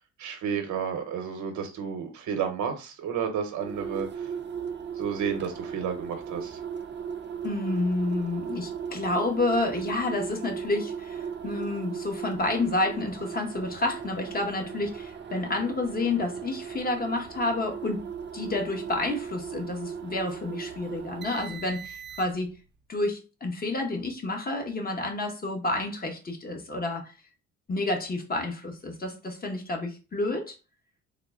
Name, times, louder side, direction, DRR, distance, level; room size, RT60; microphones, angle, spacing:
voice 1, 0.2-4.3 4.9-6.6, right 7 dB, 75° right, 0.8 m, -31 dB
sound 1, 3.6-22.6, right 7 dB, 35° right, 0.5 m, -37 dB
voice 2, 7.4-18.0 18.3-22.5 22.9-27.1 27.7-30.5, left 2 dB, 30° left, 1.0 m, -29 dB
3.7 x 2.0 x 3.5 m
cardioid pair, 90°, 30 cm